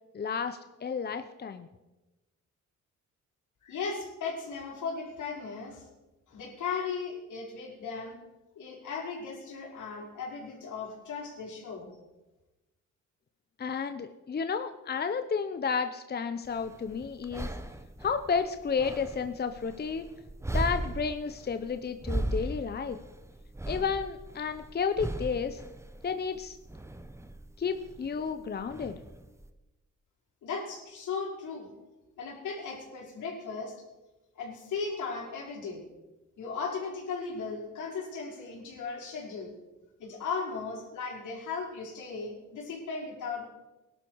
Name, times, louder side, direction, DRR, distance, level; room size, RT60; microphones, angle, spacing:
voice 1, 0.1-1.7 13.6-17.5 18.0-20.1 20.5-23.0 23.7-25.6 26.0-26.6 27.6-29.0, left 6 dB, 35° left, 9 dB, 0.9 m, -32 dB
voice 2, 3.6-5.9 6.3-8.2 8.6-11.9 30.4-31.7 32.2-33.7 34.4-35.8 36.4-39.5 40.0-43.5, left 5 dB, 80° left, -2 dB, 5.3 m, -37 dB
sound 1, 16.4-29.5, right 1 dB, 10° right, 1.2 m, -38 dB
19.5 x 12.0 x 4.8 m, 1.1 s
cardioid pair, 90°, 30 cm